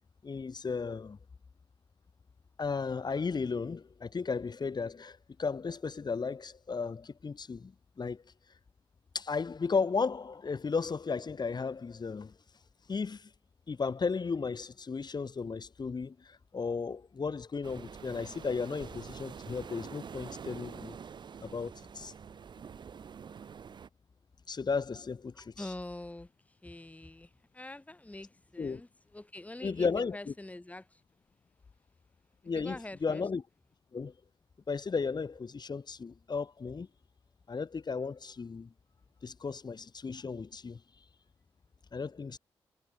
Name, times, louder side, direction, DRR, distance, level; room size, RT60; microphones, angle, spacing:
voice 1, 0.2-1.2 2.6-8.2 9.1-12.3 12.9-13.3 13.7-21.0 21.4-22.1 24.5-25.6 28.6-28.8 29.6-30.3 32.4-33.4 33.9-34.1 34.7-36.9 37.5-38.7 39.2-40.8 41.9-42.4, left 5 dB, 45° left, 1.3 m, -35 dB
sound 1, 17.6-23.9, right 7 dB, 50° right, 0.5 m, -46 dB
voice 2, 25.3-31.0 32.5-33.2, left 2 dB, 15° left, 1.3 m, -45 dB
supercardioid pair, 45°, 10 cm